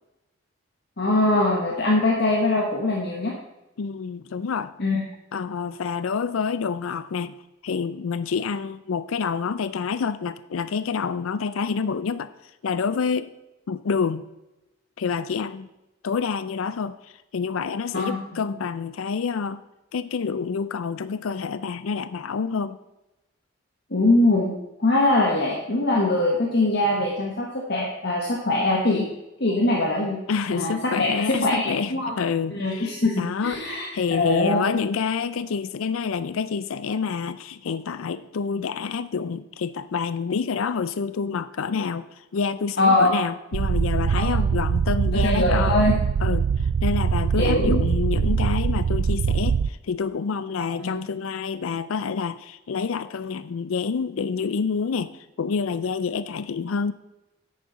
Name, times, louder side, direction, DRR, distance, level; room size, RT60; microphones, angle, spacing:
voice 1, 1.0-3.3 4.8-5.0 17.9-18.2 23.9-29.1 29.4-30.2 30.5-32.1 32.5-34.8 42.8-43.2 44.1-44.3 45.2-45.9 47.3-47.9 50.8-50.9, left 2 dB, 55° left, -2 dB, 1.4 m, -22 dB
voice 2, 3.8-4.7 5.3-7.4 7.6-13.3 13.7-14.3 15.0-15.7 16.0-19.6 19.9-22.8 30.3-45.8 46.2-56.9, left 5 dB, 85° left, 14 dB, 0.4 m, -28 dB
sound 1, 43.5-49.7, right 6 dB, 65° right, 0.3 m, -23 dB
10.5 x 8.7 x 4.0 m, 0.97 s
head